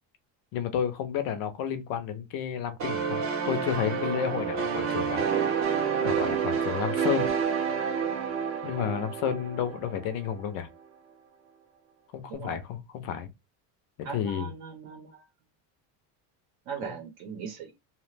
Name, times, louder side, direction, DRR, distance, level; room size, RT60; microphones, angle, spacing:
voice 1, 0.5-5.2 6.0-7.3 8.6-10.7 12.1-13.3 14.0-14.5 16.8-16.9, left 8 dB, 50° left, 0.5 m, -31 dB
sound 1, 2.8-10.3, right 7 dB, 30° right, 0.4 m, -29 dB
voice 2, 14.0-15.2 16.7-17.7, right 7 dB, 55° right, 0.7 m, -39 dB
2.7 x 2.1 x 3.1 m
cardioid pair, 180°, 46 cm